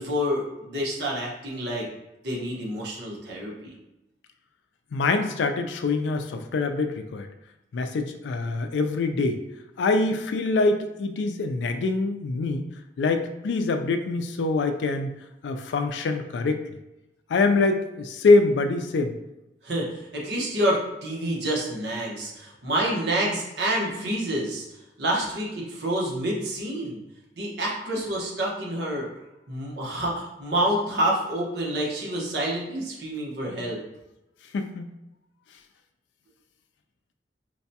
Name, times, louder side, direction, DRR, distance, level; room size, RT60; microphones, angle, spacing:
voice 1, 0.0-1.9 2.2-3.7 19.6-24.7 25.0-27.0 27.4-29.1 29.5-33.8, right 1 dB, 70° right, -3 dB, 1.0 m, -28 dB
voice 2, 4.9-7.3 7.7-9.4 9.8-12.7 13.0-15.1 15.4-16.6 17.3-19.2 34.5-34.9, left 3 dB, 80° left, 7 dB, 0.3 m, -24 dB
4.6 x 2.2 x 2.7 m, 0.93 s
head